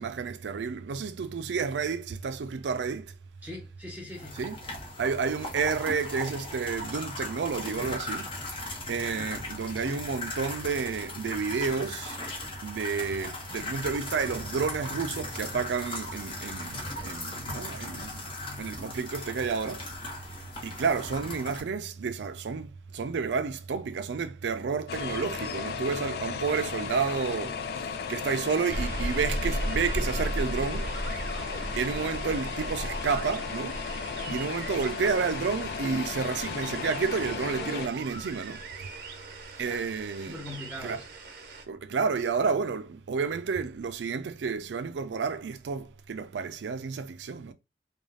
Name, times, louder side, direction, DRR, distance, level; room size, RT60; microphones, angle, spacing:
voice 1, 0.0-3.2 4.4-4.6 5.0-8.3 8.9-12.2 12.6-18.3 18.6-20.1 20.6-30.9 31.8-33.8 34.3-38.9 39.6-40.4 40.8-41.0 41.7-47.5, right 5 dB, 85° right, 0.4 m, -31 dB
voice 2, 3.4-4.4 39.6-39.9 40.2-41.1, left 1 dB, 10° right, 0.7 m, -41 dB
sound 1, 4.1-21.6, left 2 dB, 30° left, 0.8 m, -38 dB
sound 2, 24.9-37.9, left 6 dB, 60° left, 0.4 m, -35 dB
sound 3, 28.7-41.6, right 1 dB, 60° right, 0.8 m, -36 dB
2.5 x 2.3 x 3.2 m
head